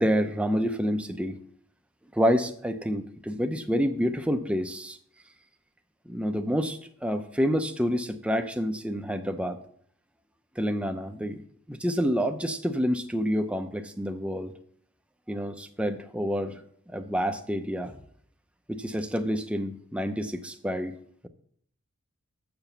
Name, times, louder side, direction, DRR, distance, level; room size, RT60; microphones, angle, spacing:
voice 1, 0.0-1.4 2.1-5.0 6.1-9.6 10.6-11.4 11.7-14.5 15.3-16.6 16.9-17.9 18.7-20.9, equal, 5° right, 7 dB, 0.6 m, -28 dB
7.1 x 6.9 x 5.7 m, 0.62 s
head